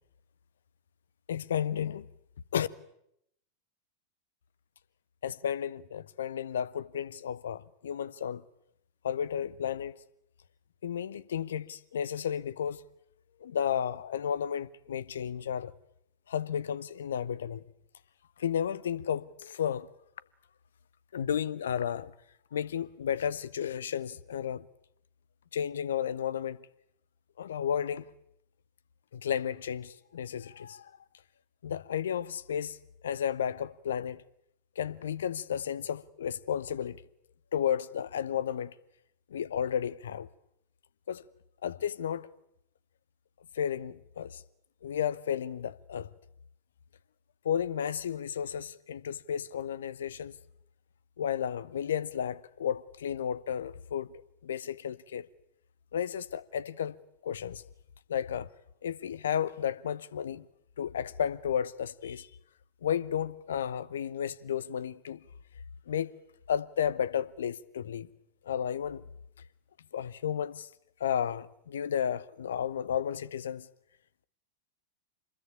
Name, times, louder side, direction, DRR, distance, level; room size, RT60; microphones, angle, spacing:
voice 1, 1.3-2.1 2.5-2.7 5.2-8.4 9.0-10.0 10.8-12.8 13.4-15.7 16.3-17.6 18.4-19.9 21.1-22.1 22.5-24.6 25.5-26.6 27.4-28.0 29.1-30.9 31.6-32.8 33.0-34.2 34.8-37.0 37.5-38.7 39.3-40.3 41.1-41.2 41.6-42.3 43.5-44.4 44.8-46.1 47.4-50.3 51.2-54.1 54.4-55.3 55.9-57.0 57.2-57.6 58.1-58.5 58.8-60.4 60.8-62.3 62.8-65.2 65.9-66.1 66.5-68.1 68.5-69.0 69.9-70.7 71.0-73.7, left 8 dB, 65° left, 0.9 m, -33 dB
26.5 x 21.0 x 8.8 m
figure-of-eight pair, 90°, 0 cm